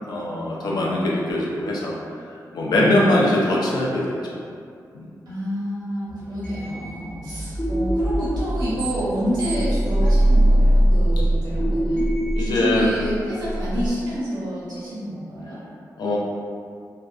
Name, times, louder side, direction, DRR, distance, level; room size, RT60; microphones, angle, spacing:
voice 1, 0.1-1.9 2.5-4.2 4.9-5.1 12.4-12.9 16.0-16.2, left 1 dB, 80° left, -3 dB, 0.4 m, -21 dB
voice 2, 2.7-3.1 5.3-12.1 12.4-15.6, equal, 85° right, -10 dB, 1.0 m, -29 dB
sound 1, 6.1-13.9, right 1 dB, 15° left, 0.5 m, -21 dB
2.5 x 2.2 x 2.3 m, 2.3 s
wide cardioid pair, 155°, 7 cm